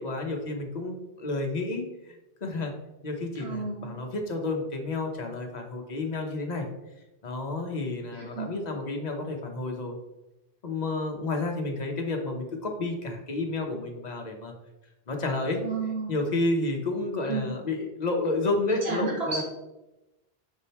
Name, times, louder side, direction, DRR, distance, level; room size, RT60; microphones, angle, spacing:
voice 1, 0.0-1.8 2.4-2.7 3.0-6.7 7.2-9.9 10.6-14.5 15.1-15.6 16.1-19.4, left 2 dB, 45° left, 2 dB, 1.0 m, -30 dB
voice 2, 3.4-4.0 8.1-8.6 15.6-16.2 17.3-17.5 18.8-19.4, right 4 dB, 85° right, -4 dB, 2.0 m, -32 dB
6.3 x 3.7 x 4.2 m, 0.99 s
omnidirectional pair, 1.0 m